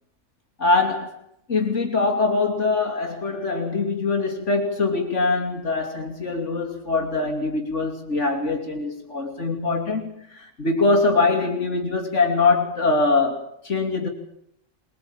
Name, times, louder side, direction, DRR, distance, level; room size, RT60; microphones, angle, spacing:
voice 1, 0.6-1.2 1.5-14.1, left 3 dB, 65° left, 2 dB, 3.1 m, -23 dB
23.5 x 22.0 x 8.8 m, 0.72 s
omnidirectional pair, 1.3 m